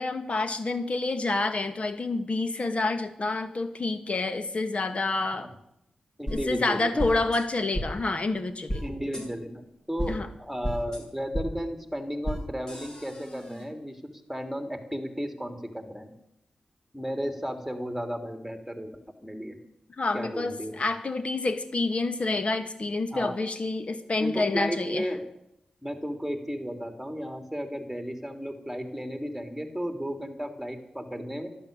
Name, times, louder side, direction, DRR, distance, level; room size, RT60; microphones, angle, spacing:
voice 1, 0.0-5.5 6.3-8.8 10.1-10.3 20.0-25.1, left 3 dB, 50° left, 9 dB, 2.2 m, -28 dB
voice 2, 6.2-7.1 8.8-14.0 14.3-16.1 16.9-18.9 19.2-19.6 20.1-20.7 23.1-23.4 24.2-25.3 25.8-31.5, equal, ahead, 6 dB, 3.4 m, -34 dB
sound 1, 6.3-6.4 7.0-7.4 7.7-7.9 8.7-8.8 9.1-9.2 10.0-10.1 10.6-11.0 11.3-11.4 12.2-12.4 12.7-13.6, equal, 30° left, 7.6 m, -32 dB
12.0 x 12.0 x 9.0 m, 0.78 s
cardioid pair, 45°, 3 cm